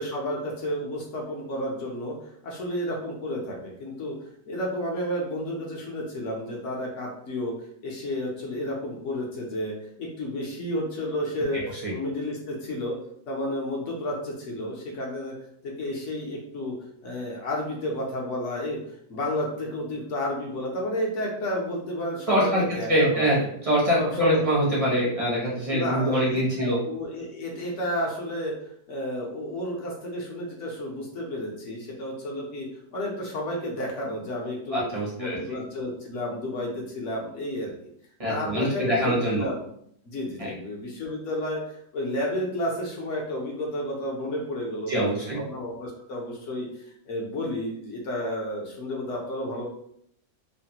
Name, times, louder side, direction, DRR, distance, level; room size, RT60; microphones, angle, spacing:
voice 1, 0.0-2.2 2.4-4.1 4.5-7.5 7.8-9.7 10.0-11.6 11.9-13.0 13.3-15.3 15.6-16.7 17.0-18.8 19.1-23.5 24.0-24.4 25.6-28.5 28.9-34.9 35.2-37.7 38.3-39.6 40.1-41.6 41.9-49.6, left 1 dB, 60° left, -2 dB, 0.8 m, -31 dB
voice 2, 11.5-11.9 22.3-22.6 22.9-23.4 23.6-26.8 34.7-35.4 38.2-39.4 40.4-40.5 44.9-45.4, equal, 40° right, -6 dB, 0.5 m, -24 dB
3.2 x 2.1 x 2.8 m, 0.68 s
omnidirectional pair, 1.8 m